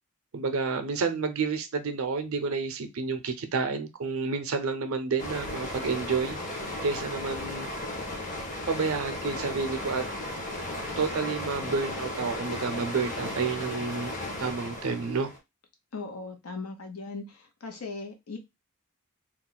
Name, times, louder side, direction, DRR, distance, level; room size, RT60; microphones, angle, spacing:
voice 1, 0.3-6.4 6.8-7.7 8.7-10.0 11.0-14.1 14.4-15.3, right 4 dB, 70° right, 0.5 m, -30 dB
sound 1, 5.2-15.4, left 1 dB, 35° left, 0.7 m, -35 dB
voice 2, 15.9-17.2 17.6-18.4, left 3 dB, 80° left, 0.8 m, -38 dB
2.4 x 2.1 x 3.8 m
head